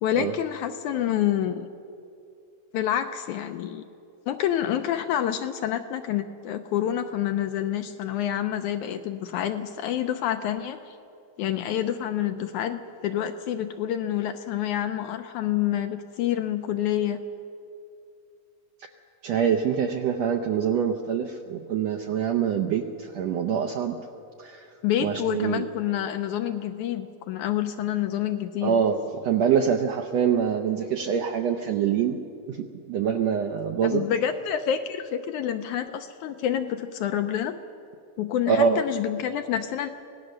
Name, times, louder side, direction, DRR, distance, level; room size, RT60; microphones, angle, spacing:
voice 1, 0.0-1.7 2.7-3.8 4.3-11.0 11.4-17.2 24.8-28.8 33.8-37.6 38.2-39.9, left 10 dB, 80° left, 7 dB, 1.9 m, -28 dB
voice 2, 19.2-24.0 24.4-24.7 25.0-25.6 28.6-32.2 32.5-32.6 32.9-34.1 38.5-38.8, right 7 dB, 75° right, 5 dB, 1.6 m, -25 dB
25.0 x 18.0 x 6.6 m, 2.5 s
omnidirectional pair, 4.0 m